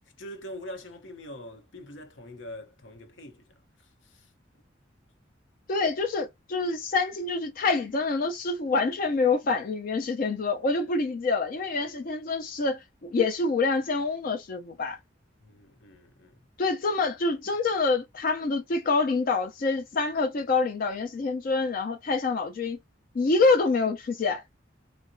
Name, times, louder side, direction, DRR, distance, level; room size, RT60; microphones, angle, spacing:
voice 1, 0.2-3.5 3.8-4.3 15.4-16.4, left 1 dB, 80° left, 0.8 m, -43 dB
voice 2, 5.7-15.0 16.6-22.8 23.1-24.4, left 3 dB, 50° left, 0.4 m, -26 dB
3.8 x 2.1 x 2.5 m
head